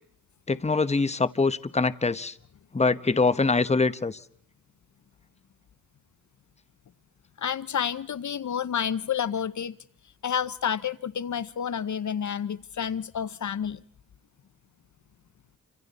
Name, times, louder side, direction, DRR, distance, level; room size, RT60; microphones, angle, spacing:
voice 1, 0.5-2.4 2.7-4.2, left 3 dB, 20° left, 1.0 m, -24 dB
voice 2, 7.4-9.7 10.2-13.8, left 8 dB, 60° left, 0.8 m, -29 dB
28.5 x 26.0 x 4.1 m
cardioid pair, 80°, 33 cm